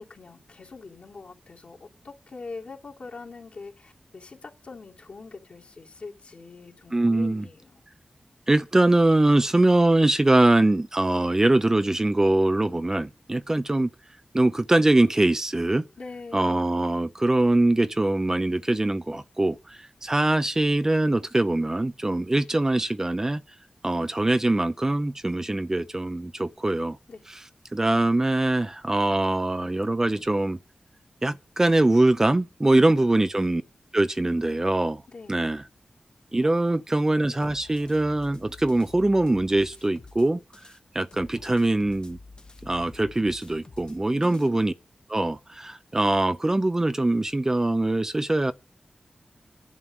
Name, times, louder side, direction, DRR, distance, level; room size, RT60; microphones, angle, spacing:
voice 1, 0.0-7.8 16.0-16.7 27.1-27.2 35.1-35.4 36.7-36.8 44.1-44.6, left 4 dB, 70° left, 2.7 m, -43 dB
voice 2, 6.9-7.4 8.5-13.9 14.3-15.8 16.3-23.4 23.8-27.0 27.3-27.4 27.7-30.6 31.2-33.6 33.9-35.0 35.3-35.6 36.3-40.4 40.9-42.2 42.6-44.7 45.1-48.5, right 2 dB, 20° right, 0.5 m, -23 dB
sound 1, 37.4-40.8 41.1-44.5, left 3 dB, 40° left, 1.1 m, -49 dB
11.0 x 7.7 x 6.1 m
wide cardioid pair, 100°, 2 cm